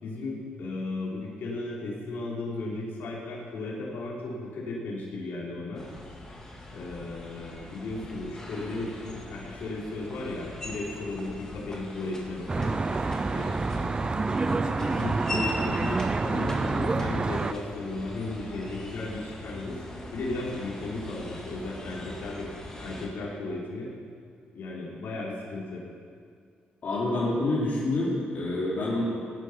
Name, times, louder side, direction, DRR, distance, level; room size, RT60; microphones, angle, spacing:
voice 1, 0.0-5.8 6.7-14.4 14.9-19.8 20.1-22.5 22.8-23.9 24.5-25.8, left 2 dB, 70° left, -5 dB, 3.5 m, -35 dB
sound 1, 5.7-23.1, left 1 dB, 15° left, 2.7 m, -41 dB
Traffic noise roadway noise, 12.5-17.5, right 3 dB, 25° right, 0.5 m, -27 dB
voice 2, 26.8-29.0, left 2 dB, 50° left, -8 dB, 3.4 m, -27 dB
17.5 x 9.6 x 5.7 m, 2.1 s
cardioid pair, 95°, 4 cm